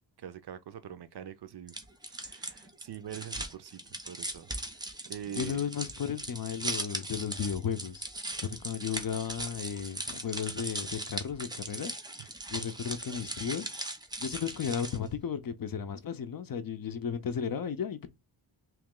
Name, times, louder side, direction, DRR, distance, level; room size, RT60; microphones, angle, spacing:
voice 1, 0.2-3.8 4.1-4.5 5.1-5.6, right 10 dB, 60° right, 0.5 m, -44 dB
sound 1, 1.7-15.1, right 1 dB, 10° right, 0.5 m, -39 dB
voice 2, 5.3-8.0 8.4-12.0 12.5-13.7 14.2-18.1, left 7 dB, 50° left, 0.5 m, -34 dB
3.1 x 2.9 x 3.6 m
wide cardioid pair, 160°, 46 cm